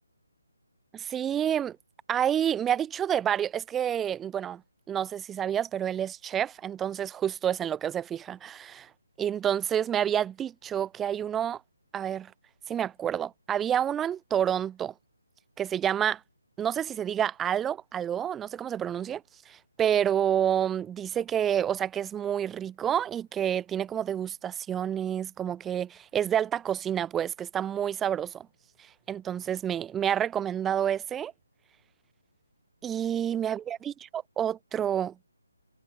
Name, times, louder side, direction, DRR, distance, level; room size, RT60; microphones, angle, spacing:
voice 1, 0.9-1.8 2.1-4.6 4.9-8.9 9.2-11.6 11.9-12.3 12.7-14.9 15.6-16.2 16.6-28.5 29.1-31.3 32.8-35.1, right 9 dB, 10° right, 1.0 m, -29 dB
figure-of-eight pair, 150°, 0 cm